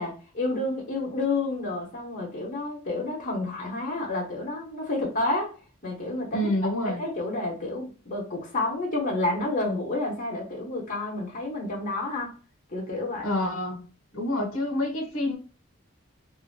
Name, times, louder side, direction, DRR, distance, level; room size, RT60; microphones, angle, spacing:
voice 1, 0.0-5.5 5.8-6.4 7.0-12.3 12.7-13.3, left 2 dB, 35° left, 1.0 m, -30 dB
voice 2, 6.3-7.0 13.2-13.9 14.1-15.4, left 1 dB, 70° left, 1.1 m, -27 dB
2.7 x 2.7 x 2.6 m
head